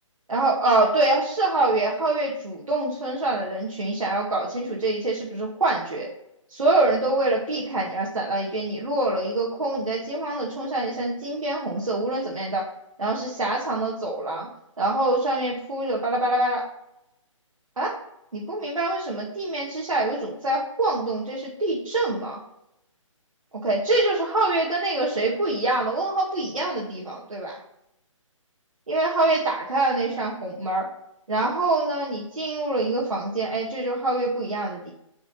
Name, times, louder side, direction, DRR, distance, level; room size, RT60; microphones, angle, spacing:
voice 1, 0.3-6.1 6.5-12.7 13.0-14.5 14.8-16.7 17.8-18.0 18.3-22.4 23.6-27.6 28.9-30.9 31.3-34.9, right 2 dB, 85° right, -4 dB, 2.1 m, -25 dB
7.1 x 5.0 x 5.7 m, 0.81 s
hypercardioid pair, 165°, 17 cm